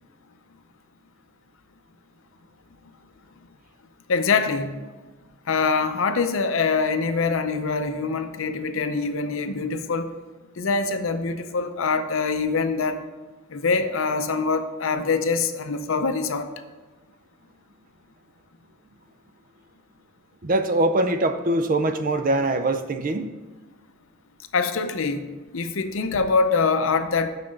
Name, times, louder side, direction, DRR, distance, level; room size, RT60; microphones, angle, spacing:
voice 1, 4.1-4.8 5.5-10.1 10.6-13.0 13.5-16.5 24.5-25.3 25.5-27.3, left 4 dB, 65° left, 9 dB, 0.6 m, -24 dB
voice 2, 20.4-23.3, right 2 dB, 40° right, 9 dB, 0.5 m, -23 dB
6.1 x 5.8 x 6.4 m, 1.2 s
head